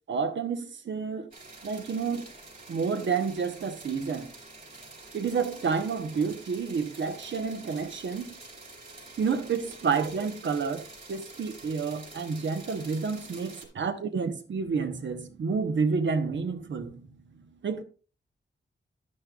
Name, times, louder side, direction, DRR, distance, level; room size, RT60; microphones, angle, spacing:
voice 1, 0.1-1.3 1.6-2.3 2.7-4.3 5.1-8.4 9.2-17.1 17.6-17.8, right 5 dB, 70° right, 1.0 m, -30 dB
sound 1, 1.3-13.7, right 2 dB, 45° right, 3.7 m, -47 dB
10.5 x 9.7 x 2.4 m
wide cardioid pair, 115°, 20 cm